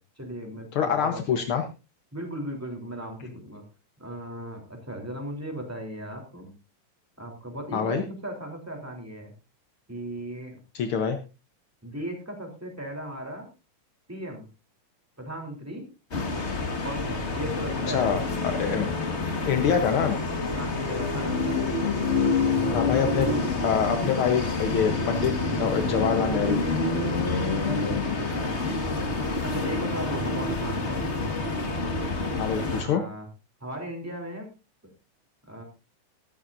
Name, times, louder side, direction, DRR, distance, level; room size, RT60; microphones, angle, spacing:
voice 1, 0.2-1.6 2.1-3.6 4.0-6.5 7.2-9.3 9.9-10.6 11.8-13.5 14.1-14.5 15.2-15.9 16.8-18.4 20.5-21.6 22.0-23.2 27.2-31.0 32.7-33.3 33.6-34.5 35.5-35.6, equal, 5° right, 2 dB, 3.1 m, -37 dB
voice 2, 0.7-1.6 7.7-8.0 10.7-11.2 17.8-18.2 18.4-18.9 19.4-20.2 22.7-23.3 23.6-26.6 32.4-33.0, left 7 dB, 65° left, 6 dB, 1.3 m, -25 dB
sound 1, 16.1-32.8, left 3 dB, 30° left, 1.3 m, -27 dB
14.0 x 14.0 x 2.6 m, 0.30 s
omnidirectional pair, 3.7 m